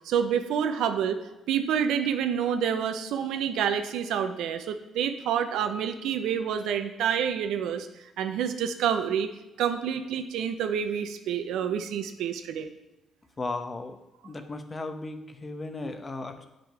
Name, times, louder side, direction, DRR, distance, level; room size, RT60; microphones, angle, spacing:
voice 1, 0.0-1.2 1.5-7.9 8.2-9.3 9.6-12.7, right 8 dB, 85° right, 8 dB, 0.6 m, -28 dB
voice 2, 13.4-14.0 14.2-16.5, left 2 dB, 30° left, 7 dB, 0.8 m, -35 dB
7.5 x 5.1 x 4.5 m, 0.95 s
cardioid pair, 90°, 0 cm